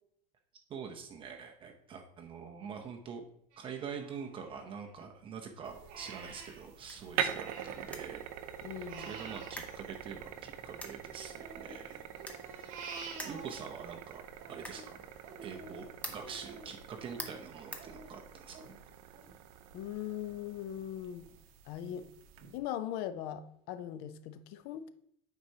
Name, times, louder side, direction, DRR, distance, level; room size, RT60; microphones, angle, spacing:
voice 1, 0.7-3.2 3.6-8.3 9.0-12.1 12.5-12.8 13.2-14.2 14.5-15.0 15.4-18.9, right 6 dB, 30° right, 3 dB, 0.7 m, -45 dB
Crying sobbing, 3.5-5.2 5.6-8.0 8.3-10.7 11.1-14.0 14.3-19.8 20.2-20.4 20.8-21.3 21.8-21.9 22.4-22.5, right 4 dB, 50° right, 1.7 m, -50 dB
sound 1, 5.6-22.6, right 9 dB, 80° right, 0.7 m, -44 dB
sound 2, 6.7-18.6, left 1 dB, 10° left, 0.8 m, -51 dB
voice 2, 8.6-9.2 19.7-21.3 21.7-22.1 22.5-24.9, left 10 dB, 60° left, 12 dB, 0.6 m, -40 dB
9.4 x 4.6 x 2.8 m, 0.70 s
cardioid pair, 145°, 18 cm